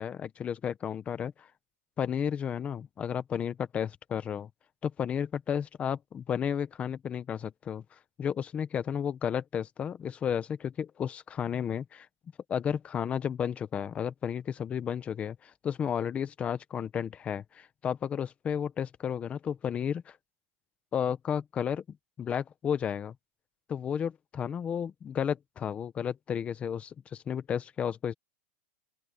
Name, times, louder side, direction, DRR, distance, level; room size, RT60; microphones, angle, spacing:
voice 1, 0.0-1.5 2.0-4.5 4.8-7.8 8.2-12.1 12.5-20.2 20.9-23.1 23.7-28.1, left 8 dB, 15° left, 0.9 m, -32 dB
open air
supercardioid pair, 165°, 8 cm